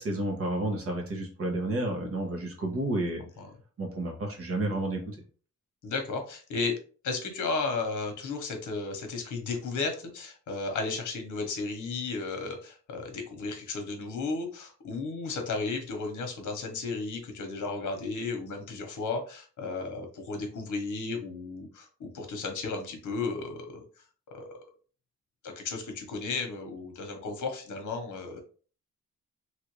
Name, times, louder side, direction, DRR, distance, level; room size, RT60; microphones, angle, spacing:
voice 1, 0.0-3.2 3.8-5.2, right 1 dB, 45° right, 0 dB, 1.0 m, -31 dB
voice 2, 5.8-6.8 7.0-23.8 24.3-24.5 25.4-28.4, left 3 dB, 70° left, 4 dB, 0.9 m, -34 dB
3.1 x 2.5 x 3.0 m, 0.40 s
wide cardioid pair, 165°, 31 cm